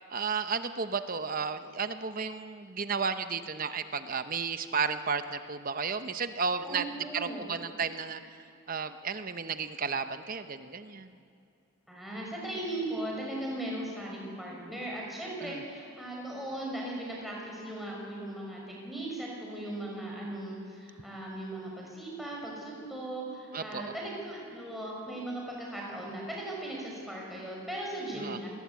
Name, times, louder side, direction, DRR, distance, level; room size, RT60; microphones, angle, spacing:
voice 1, 0.1-6.9 7.1-8.2 8.7-11.1 15.4-15.6 23.5-23.9 28.2-28.4, right 5 dB, 40° right, 10 dB, 0.8 m, -33 dB
voice 2, 6.6-7.4 11.9-28.5, right 1 dB, ahead, -3 dB, 5.9 m, -38 dB
28.0 x 20.5 x 8.4 m, 2.5 s
head